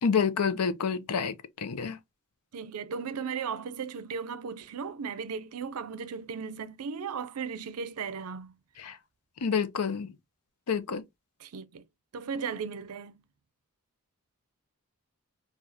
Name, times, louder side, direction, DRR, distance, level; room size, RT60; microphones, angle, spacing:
voice 1, 0.0-2.0 8.8-9.0 9.4-10.1 10.7-11.0, left 6 dB, 85° left, 0.6 m, -28 dB
voice 2, 2.5-8.5 11.4-11.8 12.1-13.1, right 6 dB, 70° right, 0.5 m, -36 dB
4.7 x 2.3 x 2.7 m
head